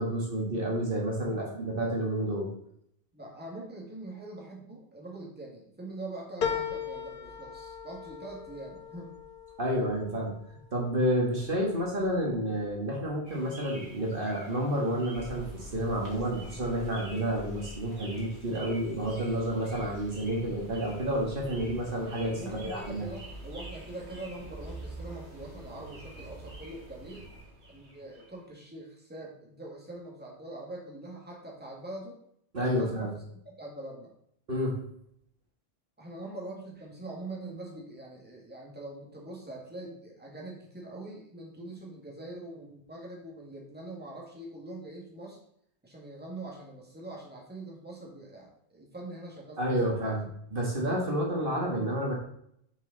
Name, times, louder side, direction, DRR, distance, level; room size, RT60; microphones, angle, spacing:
voice 1, 0.0-2.5 9.6-10.3 10.7-23.1 32.5-33.1 34.5-34.8 49.6-52.2, equal, 55° right, -2 dB, 1.8 m, -30 dB
voice 2, 3.1-9.1 22.3-27.3 27.7-32.2 32.6-34.1 36.0-45.4 45.8-50.2, right 2 dB, 10° right, -3 dB, 1.8 m, -43 dB
sound 1, 6.4-11.2 11.7-12.4 12.7-12.8, left 7 dB, 55° left, 0.8 m, -37 dB
sound 2, 13.2-28.5, right 1 dB, 80° right, 2.5 m, -50 dB
sound 3, 15.1-27.4, right 1 dB, 75° left, 2.7 m, -47 dB
6.8 x 6.4 x 3.9 m, 0.71 s
omnidirectional pair, 1.1 m